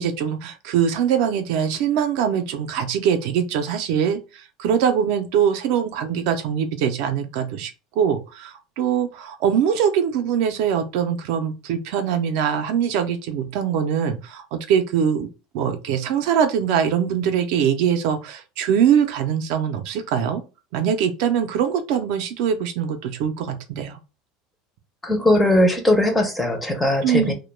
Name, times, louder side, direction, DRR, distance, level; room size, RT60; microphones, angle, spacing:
voice 1, 0.0-15.3 15.5-20.4 20.7-24.0 27.0-27.3, right 8 dB, 60° right, 0.4 m, -22 dB
voice 2, 25.0-27.3, left 1 dB, 5° left, 0.5 m, -19 dB
2.2 x 2.1 x 3.1 m
cardioid pair, 160°, 0 cm